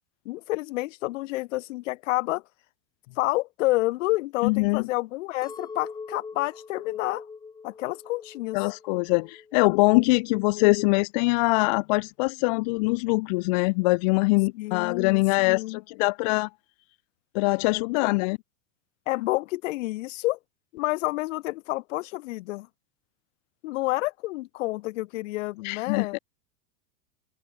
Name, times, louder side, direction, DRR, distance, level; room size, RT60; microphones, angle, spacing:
voice 1, 0.2-2.4 3.2-7.2 7.6-8.6 14.5-15.8 18.0-18.2 19.1-20.4 20.7-22.7 23.6-26.2, left 20 dB, 60° left, 1.3 m, -29 dB
voice 2, 4.4-4.9 8.5-16.5 17.3-18.4 25.6-26.2, left 27 dB, 30° left, 0.4 m, -23 dB
Chink clink, 5.4-9.7 10.1-10.7, left 5 dB, 10° left, 1.7 m, -43 dB
supercardioid pair, 160°, 43 cm